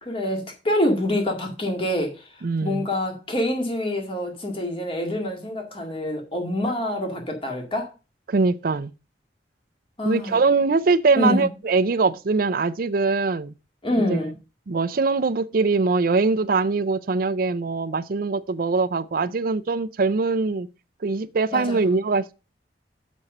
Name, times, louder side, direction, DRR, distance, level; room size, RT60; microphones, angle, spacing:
voice 1, 0.0-2.3 2.6-7.9 10.0-10.4 11.2-11.5 13.8-14.3 21.5-21.8, left 1 dB, 30° left, 2.0 m, -26 dB
voice 2, 2.4-2.9 8.3-8.9 10.0-13.5 13.9-14.2 14.7-20.7 21.0-22.3, right 4 dB, 55° right, 0.5 m, -22 dB
7.3 x 5.2 x 6.6 m
head